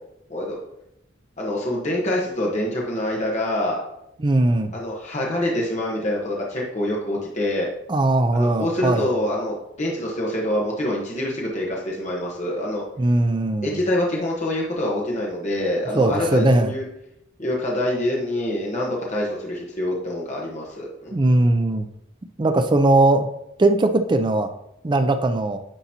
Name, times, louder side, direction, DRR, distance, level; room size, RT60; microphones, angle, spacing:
voice 1, 1.4-3.8 4.7-7.7 8.3-12.8 13.6-16.8 17.4-21.1, left 1 dB, 35° left, -3 dB, 1.1 m, -25 dB
voice 2, 4.2-4.7 7.9-9.1 13.0-13.8 15.9-16.7 21.1-21.9 22.4-23.3 23.6-24.5 24.8-25.6, right 2 dB, 25° right, 8 dB, 0.4 m, -19 dB
9.9 x 4.0 x 2.8 m, 0.81 s
head